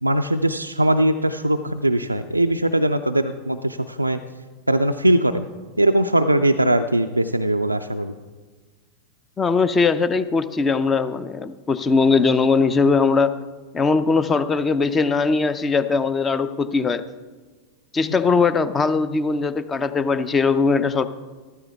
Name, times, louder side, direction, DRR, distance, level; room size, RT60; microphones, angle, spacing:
voice 1, 0.0-4.2 4.7-5.5 5.8-8.1, right 1 dB, 85° right, 6 dB, 0.3 m, -20 dB
voice 2, 9.4-13.4 13.7-17.0 17.9-21.1, left 4 dB, 20° left, 14 dB, 0.5 m, -20 dB
14.0 x 12.5 x 3.5 m, 1.4 s
figure-of-eight pair, 90°, 0 cm